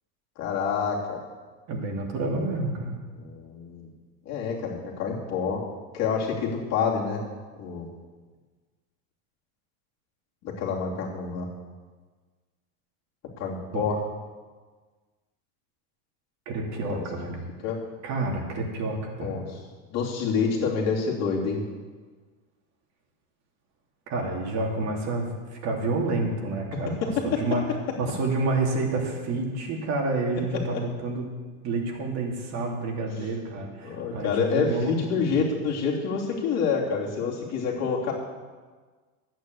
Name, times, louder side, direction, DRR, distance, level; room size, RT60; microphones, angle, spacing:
voice 1, 0.4-1.2 3.2-3.9 4.2-5.6 5.9-7.2 7.6-7.8 10.4-11.5 13.4-14.0 16.9-17.0 17.6-17.8 19.2-19.4 19.9-21.6 27.0-27.4 30.7-30.8 33.8-38.1, left 5 dB, 40° left, -3 dB, 3.2 m, -27 dB
voice 2, 1.7-3.0 13.7-13.9 16.5-17.4 18.0-19.4 24.1-26.9 27.2-27.6 28.0-31.3 31.6-35.0 35.2-35.3, right 2 dB, 40° right, 0 dB, 2.9 m, -29 dB
11.5 x 9.0 x 8.0 m, 1.4 s
supercardioid pair, 150°, 41 cm